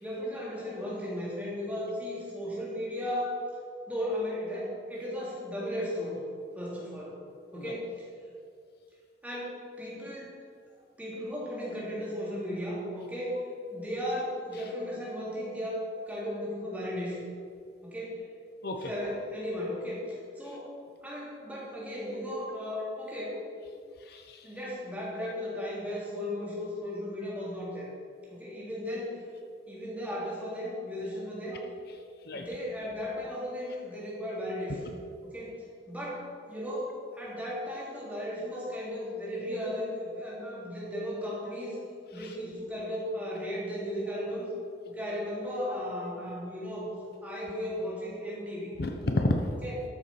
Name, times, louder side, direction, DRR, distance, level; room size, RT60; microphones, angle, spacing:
voice 1, 0.0-3.4 3.9-6.2 6.5-7.2 7.5-8.1 9.2-10.4 11.0-13.4 13.7-17.2 17.8-18.3 18.8-20.7 21.0-23.4 24.4-27.9 28.3-29.2 29.7-31.6 32.3-34.8 35.2-41.8 42.1-44.5 44.8-46.9 47.2-48.7 49.6-49.7, equal, 10° right, -6 dB, 3.2 m, -35 dB
voice 2, 24.0-24.5 32.3-32.4 42.2-42.3 48.8-49.5, left 1 dB, 55° left, 4 dB, 0.9 m, -31 dB
13.0 x 7.2 x 5.9 m, 2.3 s
head